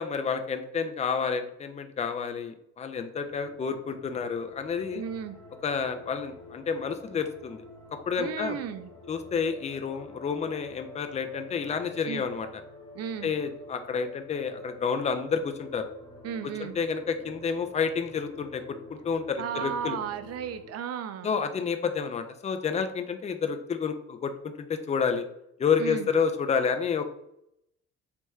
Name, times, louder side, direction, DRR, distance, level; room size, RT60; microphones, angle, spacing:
voice 1, 0.0-5.0 5.6-7.6 8.1-8.6 9.1-12.5 13.2-15.9 16.6-20.0 21.2-25.2 25.6-27.0, left 6 dB, 20° left, 8 dB, 0.4 m, -29 dB
sound 1, 3.3-20.7, left 2 dB, 45° left, 1.0 m, -49 dB
voice 2, 4.9-5.4 8.2-8.9 12.1-12.3 12.9-13.3 16.2-16.8 19.4-21.4 25.8-26.1, right 8 dB, 45° right, 10 dB, 0.4 m, -34 dB
3.4 x 3.0 x 2.3 m, 0.78 s
hypercardioid pair, 50°, 36 cm